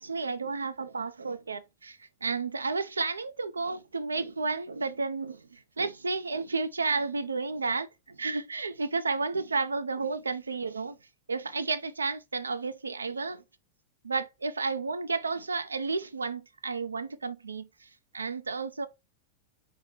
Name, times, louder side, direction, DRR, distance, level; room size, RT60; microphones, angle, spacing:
voice 1, 0.0-11.0 11.3-13.4 14.0-17.9 18.1-18.9, right 4 dB, 75° right, 0.5 m, -32 dB
4.7 x 3.6 x 3.0 m
figure-of-eight pair, 90°, 0 cm